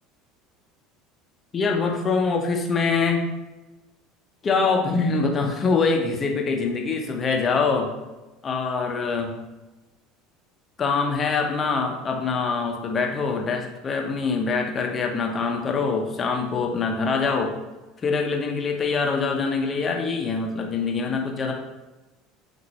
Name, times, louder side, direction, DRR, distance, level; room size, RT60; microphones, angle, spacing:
voice 1, 1.5-3.2 4.4-7.9 8.4-9.3 10.8-17.5 18.0-21.5, left 4 dB, 35° left, 2 dB, 0.7 m, -24 dB
5.6 x 2.6 x 3.1 m, 1.1 s
hypercardioid pair, 70°, 0 cm